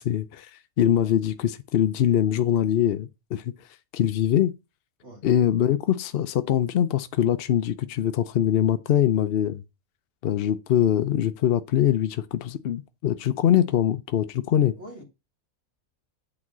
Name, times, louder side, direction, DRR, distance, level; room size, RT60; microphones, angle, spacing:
voice 1, 0.0-3.5 3.9-4.5 5.2-9.6 10.2-14.7, left 10 dB, 60° left, 0.6 m, -23 dB
voice 2, 5.0-5.2 14.8-15.0, equal, 50° right, 2.3 m, -43 dB
8.7 x 4.1 x 6.0 m
omnidirectional pair, 1.5 m